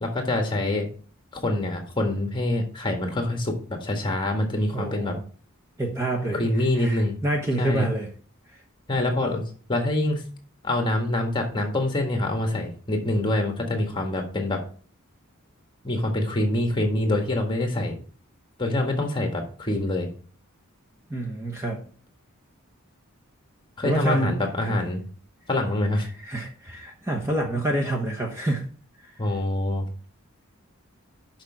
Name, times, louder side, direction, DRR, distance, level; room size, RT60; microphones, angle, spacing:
voice 1, 0.0-0.9 1.3-5.2 6.3-7.2 7.6-7.9 8.9-9.4 9.7-10.2 10.6-14.6 15.8-18.0 18.6-20.1 23.8-25.0 25.5-26.1 29.2-29.9, left 1 dB, 20° left, 3 dB, 1.6 m, -25 dB
voice 2, 4.7-5.2 5.8-8.1 21.1-21.8 23.8-24.3 24.6-24.8 26.2-28.7 29.0-29.1, right 1 dB, 10° right, 0 dB, 1.1 m, -27 dB
6.4 x 5.9 x 6.3 m, 0.42 s
head